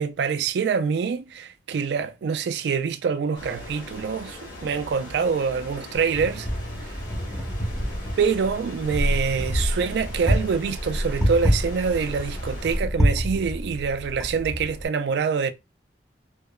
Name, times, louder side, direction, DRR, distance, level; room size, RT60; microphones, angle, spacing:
voice 1, 0.0-6.5 6.8-6.9 8.2-15.5, right 6 dB, 65° right, 0.3 m, -25 dB
sound 1, 3.3-12.8, left 1 dB, 85° left, 1.3 m, -40 dB
Wind, 5.9-14.9, equal, ahead, 0.6 m, -27 dB
2.8 x 2.1 x 2.2 m
head